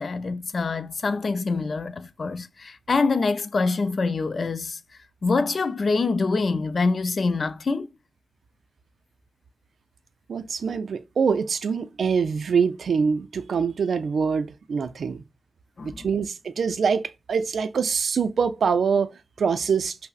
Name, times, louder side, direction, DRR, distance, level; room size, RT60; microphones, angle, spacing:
voice 1, 0.0-4.8 5.2-7.9 15.8-16.1, left 4 dB, 65° left, 0.4 m, -25 dB
voice 2, 10.3-15.2 15.8-19.1 19.4-20.0, right 6 dB, 80° right, 0.3 m, -24 dB
5.4 x 2.0 x 2.3 m
cardioid pair, 45°, 0 cm